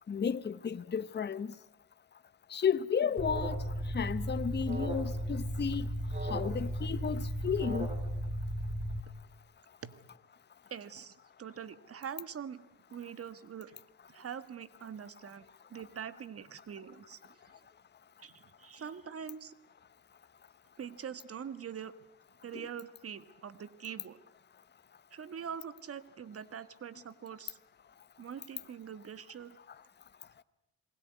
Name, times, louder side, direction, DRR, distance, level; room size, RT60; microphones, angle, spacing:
voice 1, 0.1-1.5 2.5-5.9 6.2-7.9 22.5-22.7, left 7 dB, 35° left, 1.1 m, -33 dB
Alarm, 3.2-9.0, right 1 dB, 30° right, 3.3 m, -35 dB
voice 2, 10.7-12.6 12.9-13.8 14.1-15.5 15.7-17.4 18.2-19.5 20.8-21.9 22.4-24.2 25.1-27.6 28.2-29.6, right 8 dB, 50° right, 1.7 m, -44 dB
28.0 x 20.0 x 9.5 m
cardioid pair, 90°, 30 cm